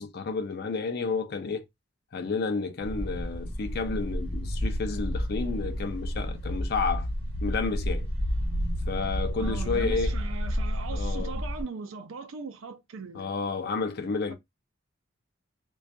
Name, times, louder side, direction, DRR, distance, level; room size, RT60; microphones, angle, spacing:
voice 1, 0.0-1.6 2.1-7.1 7.4-8.1 8.9-10.1 10.9-11.4 13.1-14.3, left 4 dB, 50° left, 0.4 m, -31 dB
sound 1, 2.8-11.6, equal, 55° right, 1.1 m, -30 dB
voice 2, 9.4-13.3 14.3-14.4, right 4 dB, 90° right, 0.5 m, -39 dB
2.5 x 2.3 x 2.2 m
head